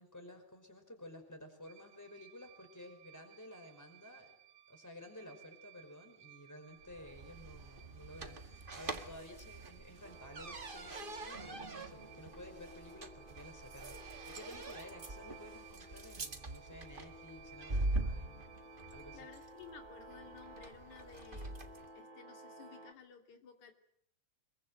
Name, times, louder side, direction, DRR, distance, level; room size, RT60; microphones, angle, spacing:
voice 1, 0.0-4.3 4.7-18.5 18.9-19.3, left 1 dB, 5° left, 5 dB, 5.3 m, -53 dB
sound 1, 1.7-19.2, right 13 dB, 65° right, 2.6 m, -60 dB
sound 2, 6.8-21.9, right 2 dB, 30° right, 1.0 m, -44 dB
sound 3, 10.0-22.9, right 1 dB, 85° right, 0.4 m, -55 dB
voice 2, 19.1-23.7, left 6 dB, 70° left, 5 dB, 4.3 m, -55 dB
26.0 x 22.5 x 7.8 m, 0.70 s
omnidirectional pair, 3.5 m